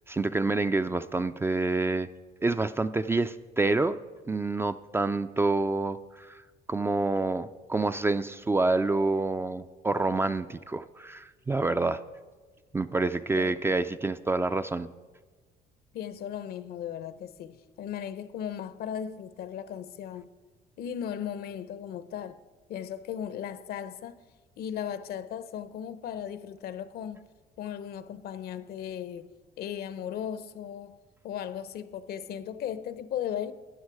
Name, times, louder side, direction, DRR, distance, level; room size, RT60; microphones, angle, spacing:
voice 1, 0.1-2.1 2.4-4.0 4.3-6.4 6.7-12.0 12.7-14.9, right 3 dB, 15° right, 0.3 m, -27 dB
voice 2, 15.9-20.3 20.8-22.4 22.7-24.2 24.6-27.3 27.6-29.3 29.6-31.0 31.2-33.5, left 9 dB, 65° left, 0.7 m, -36 dB
13.0 x 9.6 x 4.7 m
cardioid pair, 110°, 17 cm